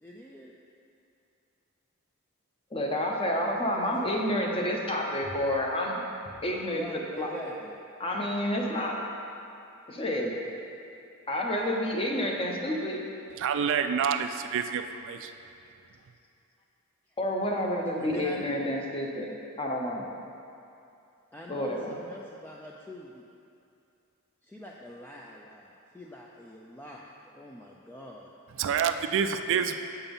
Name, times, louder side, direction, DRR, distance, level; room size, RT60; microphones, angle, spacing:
voice 1, 0.0-0.6 3.8-4.3 6.7-7.8 18.0-18.5 21.3-23.2 24.4-28.3, equal, 10° left, -2 dB, 0.4 m, -44 dB
voice 2, 2.7-6.0 6.4-7.3 8.0-9.0 9.9-10.3 11.3-13.0 17.2-20.1 21.5-21.9, left 1 dB, 25° left, 0 dB, 0.8 m, -29 dB
voice 3, 13.4-15.3 28.6-29.8, right 7 dB, 60° right, 8 dB, 0.3 m, -27 dB
6.9 x 5.6 x 5.4 m, 2.6 s
head